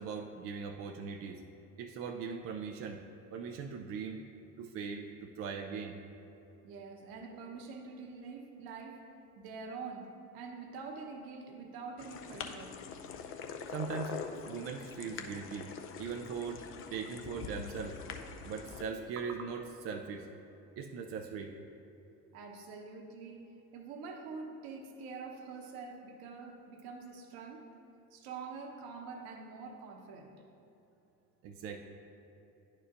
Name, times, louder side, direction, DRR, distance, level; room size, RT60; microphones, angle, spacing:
voice 1, 0.0-1.4 1.8-3.0 3.3-4.2 4.6-6.0 13.7-15.7 16.0-16.7 16.9-18.0 18.4-20.3 20.8-21.6 31.4-31.8, right 5 dB, 35° right, 3 dB, 0.4 m, -40 dB
voice 2, 6.6-9.0 9.3-12.7 22.3-23.5 23.7-27.7 28.1-30.3, right 4 dB, 50° right, 3 dB, 1.0 m, -45 dB
sound 1, 12.0-18.8, left 6 dB, 30° left, 0.5 m, -44 dB
11.0 x 4.5 x 2.5 m, 2.8 s
figure-of-eight pair, 60°, 46 cm